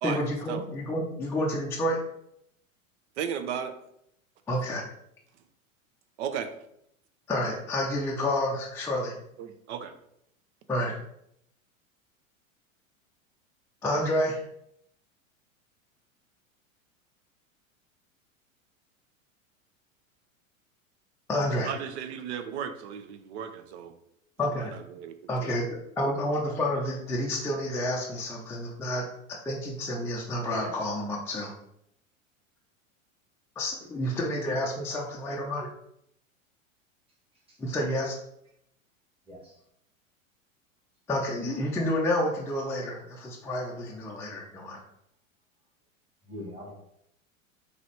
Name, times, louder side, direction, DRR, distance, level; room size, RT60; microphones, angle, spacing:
voice 1, 0.0-2.0 4.5-4.9 7.3-9.1 10.7-10.9 13.8-14.4 21.3-21.7 24.4-24.7 25.3-29.0 29.4-31.5 33.6-35.7 37.6-38.1 41.1-44.8, left 1 dB, 5° left, -3 dB, 0.5 m, -29 dB
voice 2, 3.2-3.8 6.2-6.5 9.4-9.9 21.6-23.9 24.6-25.1 25.4-25.5, right 8 dB, 55° right, 9 dB, 0.6 m, -35 dB
voice 3, 30.5-31.0 37.5-37.6 39.3-39.5 46.3-46.7, equal, 15° right, -4 dB, 1.5 m, -40 dB
3.9 x 3.1 x 3.2 m, 0.75 s
hypercardioid pair, 90°, 41 cm